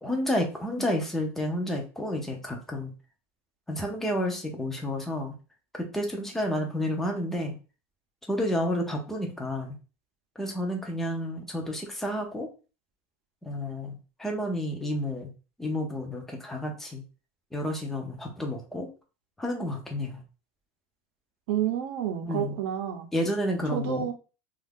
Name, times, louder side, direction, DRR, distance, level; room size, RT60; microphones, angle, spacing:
voice 1, 0.0-2.9 3.7-5.3 5.7-7.5 8.3-9.8 10.4-12.5 13.4-15.3 15.6-17.0 17.5-18.9 19.4-20.2 22.2-22.5 23.1-24.1, left 1 dB, 5° left, 0.5 m, -30 dB
voice 2, 21.5-23.1 23.7-24.1, right 10 dB, 60° right, 0.6 m, -29 dB
2.5 x 2.4 x 3.4 m
supercardioid pair, 165°, 7 cm